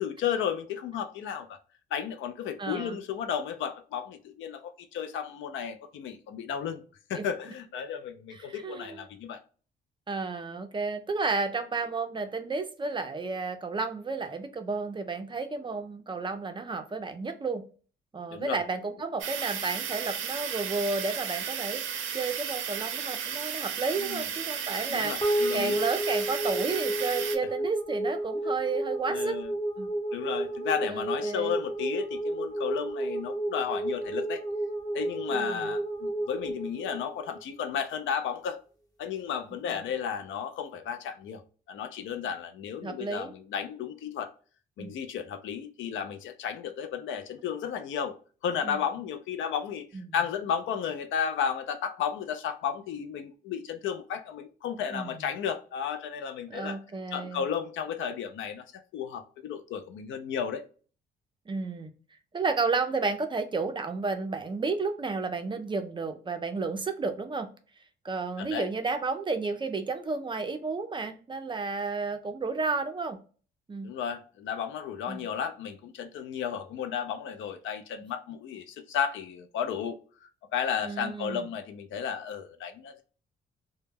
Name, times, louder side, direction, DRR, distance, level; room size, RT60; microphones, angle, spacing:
voice 1, 0.0-1.6 1.9-6.8 7.1-9.4 18.3-18.6 24.0-24.3 24.9-25.8 29.1-29.5 30.1-34.4 34.9-38.6 39.0-41.4 41.7-44.3 44.8-48.2 48.4-49.9 50.1-56.8 57.1-58.6 58.9-60.6 68.4-68.7 73.8-83.0, left 8 dB, 75° left, 0.5 m, -33 dB
voice 2, 2.6-3.0 7.1-7.3 8.5-9.0 10.1-17.6 18.1-21.8 22.1-25.1 25.5-29.4 29.8-29.9 30.9-31.5 35.3-35.7 42.8-43.3 44.8-44.9 48.6-48.8 49.9-50.1 54.9-55.1 56.5-57.4 61.5-61.9 62.3-67.5 68.0-73.2 73.7-73.9 75.1-75.3 80.8-81.5, right 4 dB, 25° right, 0.4 m, -32 dB
sound 1, 19.2-27.4, right 8 dB, 75° right, 0.5 m, -34 dB
sound 2, 25.2-37.7, right 1 dB, 20° left, 0.8 m, -31 dB
2.1 x 2.1 x 3.3 m
cardioid pair, 90°, 20 cm